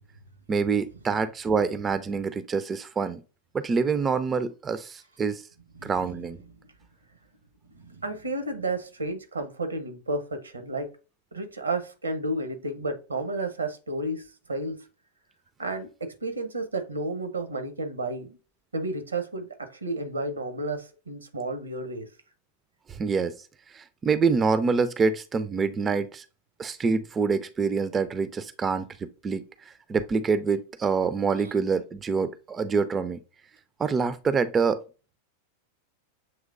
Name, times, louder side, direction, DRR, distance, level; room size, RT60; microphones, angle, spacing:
voice 1, 0.5-3.2 3.5-5.4 5.8-6.4 22.9-23.3 23.7-26.2 26.6-29.4 29.9-33.2 33.8-34.8, right 5 dB, 20° right, 0.4 m, -26 dB
voice 2, 5.7-6.3 7.7-10.9 11.3-14.9 15.6-18.4 18.7-22.1 31.4-31.5, right 2 dB, 75° right, 0.8 m, -32 dB
7.1 x 3.1 x 2.4 m
figure-of-eight pair, 90°, 0 cm